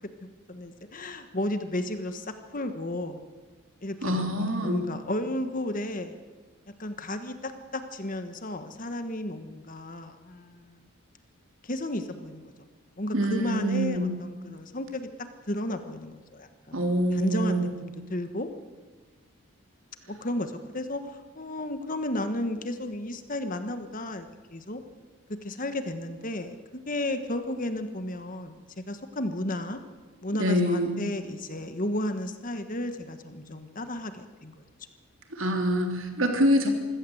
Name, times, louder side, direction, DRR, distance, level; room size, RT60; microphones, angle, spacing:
voice 1, 0.2-3.2 3.8-6.1 6.8-10.8 11.6-12.5 13.0-15.1 15.5-16.8 17.1-18.5 20.1-21.0 21.3-24.8 25.3-29.8 30.2-34.6, left 1 dB, 40° left, 9 dB, 1.4 m, -33 dB
voice 2, 4.0-4.9 13.1-14.1 16.7-17.7 30.4-31.0 35.3-36.7, equal, 65° right, 4 dB, 3.2 m, -25 dB
25.0 x 16.5 x 7.9 m, 1.4 s
head